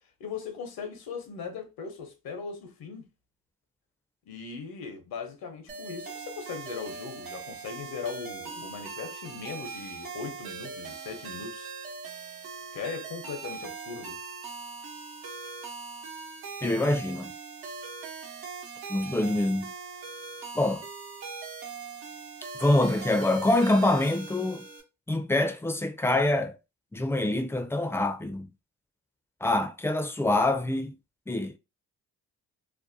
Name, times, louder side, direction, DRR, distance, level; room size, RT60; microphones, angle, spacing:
voice 1, 0.2-3.1 4.3-11.7 12.7-14.2, left 5 dB, 70° left, 0.8 m, -39 dB
sound 1, 5.7-24.8, right 5 dB, 75° right, 0.9 m, -41 dB
voice 2, 16.6-17.3 18.9-19.7 20.5-20.8 22.6-24.6 25.1-26.5 26.9-28.5 29.4-30.9 31.3-31.6, left 2 dB, 5° left, 0.4 m, -25 dB
2.6 x 2.2 x 2.6 m
supercardioid pair, 65°, 37 cm